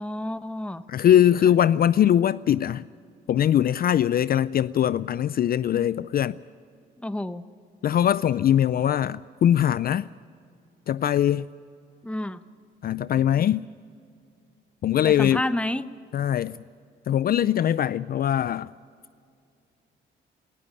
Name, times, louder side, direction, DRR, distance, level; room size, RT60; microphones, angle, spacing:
voice 1, 0.0-0.8 7.0-7.5 12.0-12.4 15.0-15.9, left 1 dB, 5° left, 0.8 m, -29 dB
voice 2, 0.9-2.8 3.3-6.4 7.8-10.1 10.9-11.5 12.8-13.7 14.8-15.4 16.1-16.6 17.1-18.7, left 10 dB, 50° left, 0.4 m, -21 dB
19.0 x 14.0 x 9.9 m
cardioid pair, 90°, 20 cm